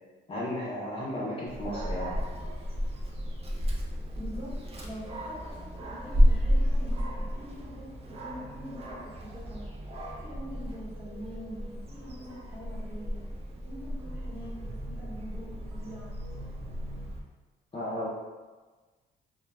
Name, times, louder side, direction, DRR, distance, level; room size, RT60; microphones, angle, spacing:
voice 1, 0.3-2.2 17.7-18.1, left 1 dB, 30° left, -6 dB, 0.5 m, -34 dB
Dog, 1.5-17.2, equal, 30° right, 0.5 m, -32 dB
voice 2, 4.2-13.2 13.7-16.2, equal, 10° right, -7 dB, 0.9 m, -44 dB
2.2 x 2.1 x 3.2 m, 1.3 s
cardioid pair, 90°, 20 cm